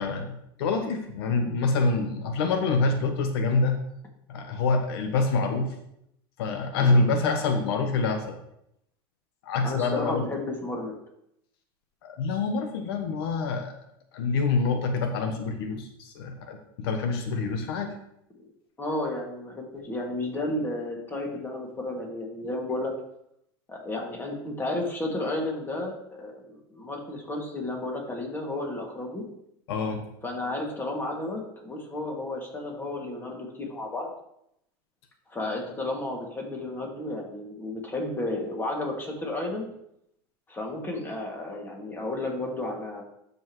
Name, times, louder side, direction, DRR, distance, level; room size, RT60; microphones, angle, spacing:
voice 1, 0.0-3.8 4.3-5.7 6.4-8.3 9.4-10.2 12.0-13.7 14.1-17.9 29.7-30.0, left 3 dB, 80° left, 5 dB, 1.1 m, -26 dB
voice 2, 9.6-10.9 18.8-22.9 23.7-29.3 30.2-34.1 35.3-39.7 40.5-43.0, left 2 dB, 15° left, 0 dB, 2.3 m, -32 dB
12.0 x 5.5 x 3.1 m, 0.77 s
supercardioid pair, 125°, 13 cm